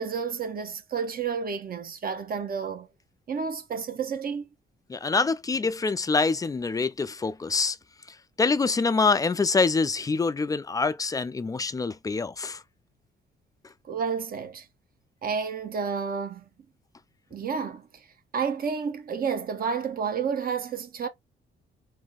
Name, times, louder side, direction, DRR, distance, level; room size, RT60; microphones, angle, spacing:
voice 1, 0.0-2.9 3.3-4.5 13.9-14.6 15.2-16.4 17.3-17.9 18.3-21.1, right 6 dB, 45° right, 0.8 m, -30 dB
voice 2, 4.9-7.8 8.1-12.6, left 4 dB, 20° left, 0.3 m, -25 dB
3.5 x 2.7 x 2.3 m
cardioid pair, 90°, 20 cm